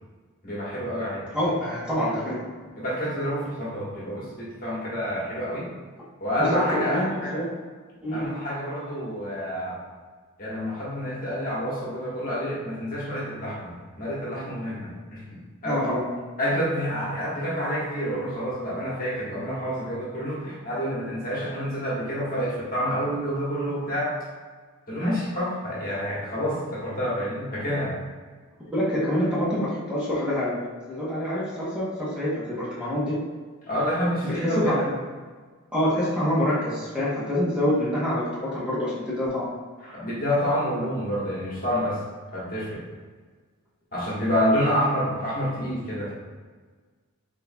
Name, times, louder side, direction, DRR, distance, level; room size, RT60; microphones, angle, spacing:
voice 1, 0.4-1.2 2.8-5.6 6.2-7.4 8.1-9.8 10.4-15.2 15.6-15.9 16.4-24.1 24.9-27.9 33.7-34.9 39.9-42.0 42.3-42.8 43.9-46.1, equal, 40° left, -6 dB, 1.4 m, -28 dB
voice 2, 1.3-2.4 6.4-7.5 8.0-8.3 15.6-16.1 28.6-30.6 30.9-33.2 34.2-34.8 35.7-39.5, left 1 dB, 5° right, -9 dB, 0.9 m, -26 dB
4.6 x 3.9 x 2.2 m, 1.5 s
head